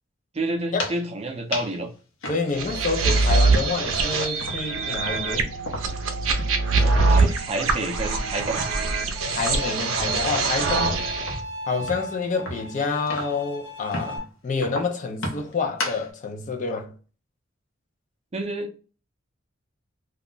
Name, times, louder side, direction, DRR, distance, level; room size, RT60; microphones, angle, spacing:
voice 1, 0.3-1.9 6.8-8.6 18.3-18.8, right 2 dB, 30° right, 0.5 m, -29 dB
sound 1, 0.6-1.1 1.5-1.8 2.2-3.5 3.8-6.6 6.9-7.1 7.5-8.9 9.3-13.5 13.9-14.2 14.6-16.1, left 1 dB, 75° left, 0.7 m, -35 dB
voice 2, 2.3-5.5 9.3-11.0 11.7-16.9, left 4 dB, 40° left, 0.5 m, -28 dB
sound 2, 2.6-11.4, right 3 dB, 90° right, 0.5 m, -23 dB
Bowed string instrument, 9.2-14.2, left 1 dB, 15° left, 0.8 m, -37 dB
2.3 x 2.0 x 3.7 m
head